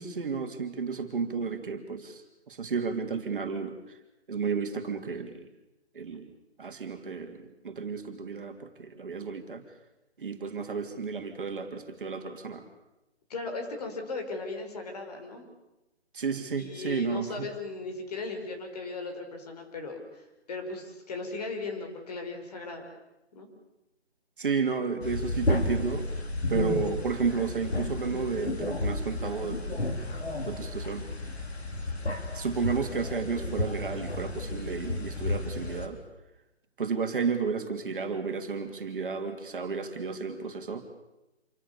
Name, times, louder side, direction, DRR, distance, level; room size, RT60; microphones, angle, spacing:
voice 1, 0.0-4.0 4.3-5.5 5.9-6.3 6.6-9.6 10.2-12.7 16.1-17.5 24.4-26.1 26.5-29.9 30.5-31.1 32.3-36.0 36.8-40.9, right 5 dB, 50° right, 5 dB, 3.0 m, -32 dB
voice 2, 13.3-15.5 16.6-22.8 23.3-23.5, left 3 dB, 35° left, 4 dB, 5.5 m, -37 dB
sound 1, 25.0-35.9, left 2 dB, 65° left, 4.1 m, -32 dB
27.5 x 24.5 x 7.0 m, 0.97 s
figure-of-eight pair, 150°, 34 cm